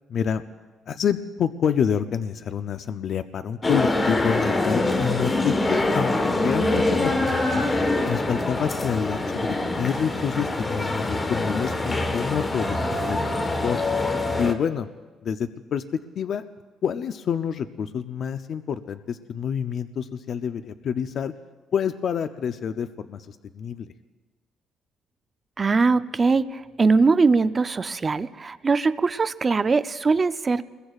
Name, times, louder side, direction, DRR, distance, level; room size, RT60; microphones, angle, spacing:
voice 1, 0.1-0.4 0.9-7.7 8.1-13.8 14.4-14.9 15.2-15.8 16.2-16.4 16.8-21.3 21.7-23.9, left 7 dB, 55° left, 9 dB, 0.5 m, -28 dB
sound 1, 3.6-14.5, left 2 dB, 20° left, 1.2 m, -24 dB
voice 2, 25.6-30.6, right 4 dB, 25° right, 12 dB, 0.5 m, -21 dB
27.5 x 21.5 x 2.4 m, 1.3 s
cardioid pair, 130°, 0 cm